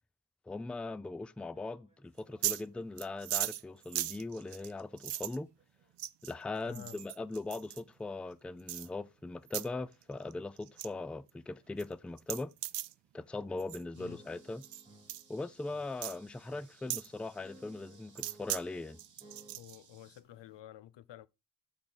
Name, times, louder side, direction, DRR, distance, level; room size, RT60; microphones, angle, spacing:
voice 1, 0.5-5.5 6.2-12.5 13.1-14.6 15.3-19.0, left 3 dB, 5° left, 0.3 m, -40 dB
sound 1, 1.1-1.2 1.5-5.9 7.3-7.4 8.0-8.3 8.7-9.2 9.8-10.1 10.7-11.0 11.6-11.7 12.4-12.5 13.2-13.3 14.0-19.6, right 1 dB, 15° right, 2.7 m, -61 dB
sound 2, 2.2-2.6 3.0-5.4 6.0-6.3 6.7-7.8 8.7-8.9 9.5-9.7 10.0-10.3 10.6-10.9 11.3-11.4 11.8-11.9 12.2-12.9 13.6-13.8 14.6-14.8 15.1-15.2 16.0-16.2 16.9-17.1 18.2-18.6 19.0-19.8, right 14 dB, 75° right, 0.5 m, -37 dB
voice 2, 6.7-7.0 14.0-14.2 19.6-21.3, left 12 dB, 85° left, 0.6 m, -50 dB
sound 3, 13.9-20.2, right 5 dB, 45° right, 1.5 m, -64 dB
8.5 x 3.8 x 6.2 m
wide cardioid pair, 135°, 42 cm